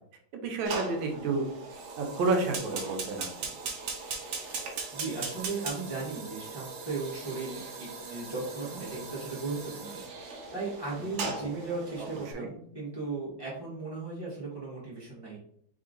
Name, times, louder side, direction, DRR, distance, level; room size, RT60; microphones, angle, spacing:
voice 1, 0.4-1.5 2.0-3.5 11.2-11.3 12.0-12.1 12.3-12.5, right 3 dB, 80° right, 3 dB, 1.6 m, -30 dB
Fire, 0.6-12.3, right 4 dB, 60° right, 0.7 m, -39 dB
voice 2, 4.9-15.4, right 3 dB, 15° left, -8 dB, 1.4 m, -37 dB
3.7 x 3.5 x 3.8 m, 0.65 s
omnidirectional pair, 2.1 m